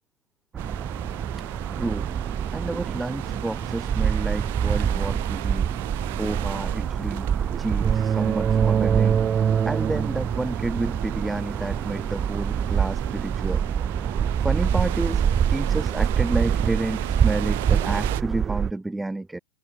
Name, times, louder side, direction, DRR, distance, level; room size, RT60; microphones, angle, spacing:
sound 1, 0.5-18.7, right 8 dB, 25° right, 0.9 m, -25 dB
sound 2, 0.6-18.2, right 19 dB, 55° right, 7.1 m, -37 dB
voice 1, 1.7-2.1 2.5-5.7 6.2-7.3 7.6-9.2 9.6-13.6 14.4-15.2 15.5-19.4, right 2 dB, 5° right, 1.6 m, -30 dB
figure-of-eight pair, 95°, 0 cm